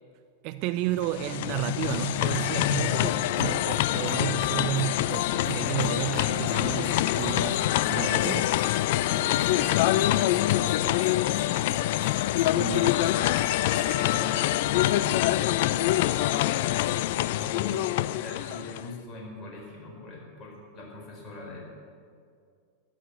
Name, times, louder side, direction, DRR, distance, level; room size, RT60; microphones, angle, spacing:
voice 1, 0.4-8.5 12.5-13.0, right 13 dB, 45° right, 12 dB, 0.5 m, -32 dB
sound 1, 0.9-18.9, left 14 dB, 50° left, 0.3 m, -25 dB
Crumpling crinkling, 2.2-3.5 3.8-3.9 4.7-4.8 5.3-7.1 9.2-10.8 11.4-11.6 12.5-12.6 12.8-14.9, left 1 dB, 5° left, 1.8 m, -45 dB
sound 2, 3.4-14.4, right 3 dB, 70° right, 2.1 m, -49 dB
voice 2, 9.1-10.5 13.7-16.4 17.1-21.6, left 2 dB, 25° left, -2 dB, 4.8 m, -42 dB
14.0 x 11.0 x 7.0 m, 2.2 s
figure-of-eight pair, 90°, 0 cm